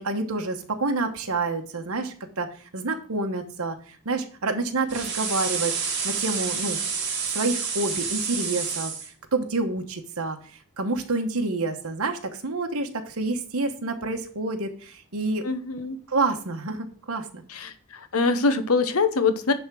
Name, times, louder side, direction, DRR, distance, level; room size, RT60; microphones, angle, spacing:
voice 1, 0.0-2.5 2.7-3.8 4.0-5.8 6.0-6.8 7.3-10.4 10.8-15.4 16.1-17.4, right 3 dB, 80° right, 4 dB, 1.2 m, -28 dB
sound 1, 4.9-9.1, right 5 dB, 55° right, 2.6 m, -29 dB
voice 2, 15.4-16.0 17.5-19.5, left 4 dB, 80° left, 10 dB, 1.0 m, -24 dB
10.0 x 3.6 x 6.2 m, 0.43 s
head